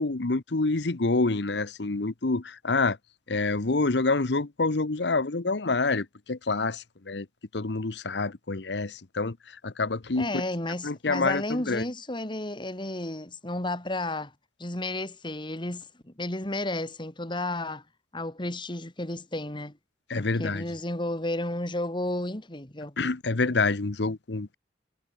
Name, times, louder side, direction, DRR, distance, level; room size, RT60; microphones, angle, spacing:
voice 1, 0.0-3.0 3.3-7.3 7.5-9.4 9.6-10.4 10.8-11.8 20.1-20.6 23.0-24.5, left 3 dB, 75° left, 1.0 m, -27 dB
voice 2, 10.2-14.3 14.6-17.8 18.1-19.8 20.2-22.9, left 1 dB, 25° left, 2.5 m, -32 dB
head